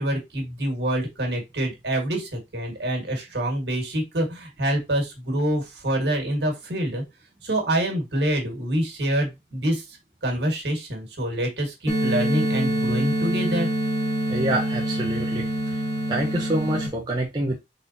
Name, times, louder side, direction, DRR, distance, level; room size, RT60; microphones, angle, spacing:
voice 1, 0.0-7.0 7.4-13.7, right 1 dB, 65° right, 1.8 m, -26 dB
sound 1, 11.9-16.9, right 1 dB, 20° left, 1.6 m, -25 dB
voice 2, 14.3-15.8 16.1-17.6, right 1 dB, 25° right, 0.7 m, -27 dB
4.0 x 3.9 x 2.8 m
head